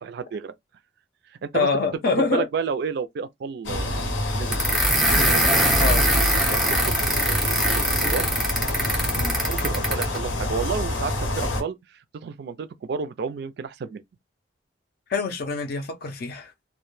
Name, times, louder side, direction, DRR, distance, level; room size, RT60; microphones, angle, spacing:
voice 1, 0.0-0.5 1.4-1.7 2.1-5.9 6.5-7.4 7.8-7.9 8.1-8.3 9.5-11.8 12.1-14.0, right 6 dB, 60° right, 0.3 m, -31 dB
voice 2, 1.5-2.4 5.1-5.3 5.8-6.1 9.2-9.4 15.1-16.5, left 4 dB, 55° left, 0.5 m, -25 dB
sound 1, 3.6-11.6, left 1 dB, 85° left, 0.8 m, -27 dB
sound 2, 4.5-10.2, right 1 dB, ahead, 0.6 m, -22 dB
2.1 x 2.1 x 3.0 m
head